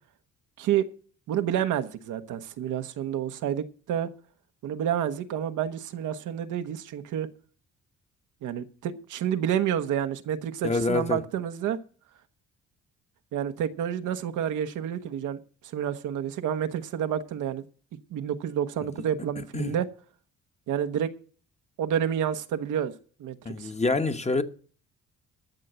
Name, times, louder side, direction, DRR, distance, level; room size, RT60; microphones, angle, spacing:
voice 1, 1.3-4.1 4.6-7.3 8.4-11.8 13.3-15.4 15.7-17.6 18.1-19.9 20.7-21.1 21.8-22.9 23.2-23.7, right 9 dB, 80° right, 1.1 m, -29 dB
voice 2, 10.6-11.2 19.4-19.7 23.4-24.4, left 3 dB, 20° left, 1.1 m, -26 dB
13.0 x 6.5 x 8.0 m
cardioid pair, 90°, 30 cm